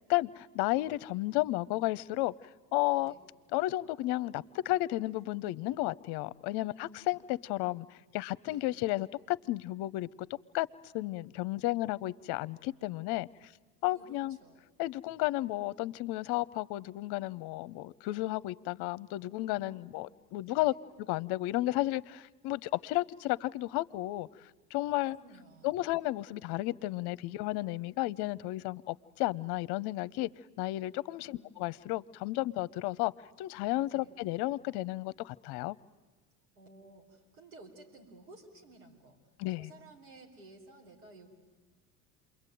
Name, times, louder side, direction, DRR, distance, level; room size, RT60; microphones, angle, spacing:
voice 1, 0.1-2.3 2.7-3.1 3.5-7.9 8.1-10.1 10.5-10.7 10.9-13.3 13.8-14.4 14.8-20.7 21.1-24.3 24.7-25.2 25.6-30.3 30.6-33.1 33.4-35.8 39.4-39.7, left 17 dB, 60° left, 18 dB, 0.8 m, -33 dB
voice 2, 6.6-7.2 7.7-7.8 8.5-8.7 13.9-14.7 19.5-20.1 20.5-20.8 25.1-25.9 31.2-31.5 33.9-34.1 36.5-39.2 39.6-41.3, right 2 dB, 90° right, 0 dB, 4.6 m, -55 dB
28.0 x 22.5 x 9.2 m, 1.3 s
hypercardioid pair, 80°, 45 cm